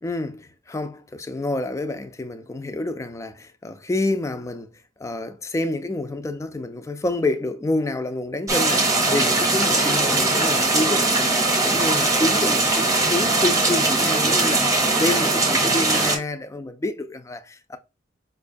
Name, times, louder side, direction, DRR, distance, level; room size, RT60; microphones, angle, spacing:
voice 1, 0.0-4.7 5.0-17.8, left 2 dB, 15° left, 0.3 m, -28 dB
sound 1, 8.5-16.2, right 2 dB, 20° right, 0.7 m, -20 dB
5.0 x 2.3 x 2.5 m
head